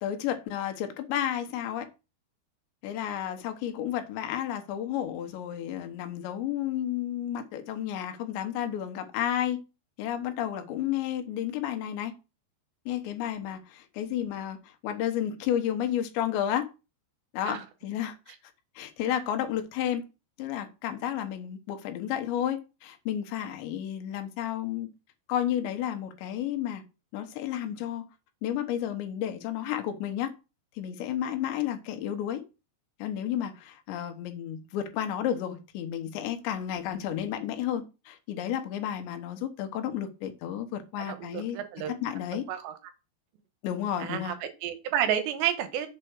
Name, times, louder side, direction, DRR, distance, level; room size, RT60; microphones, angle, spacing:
voice 1, 0.0-1.9 2.8-9.6 10.0-12.1 12.9-16.7 17.3-18.2 18.8-20.1 20.4-24.9 25.3-26.8 27.1-28.1 28.4-30.3 30.8-32.4 33.0-41.6 41.9-42.5 43.6-44.4, left 10 dB, 85° left, 3.3 m, -32 dB
voice 2, 41.0-42.0 42.5-42.7 44.0-45.9, right 10 dB, 80° right, 3.2 m, -30 dB
7.4 x 4.5 x 6.5 m
omnidirectional pair, 5.0 m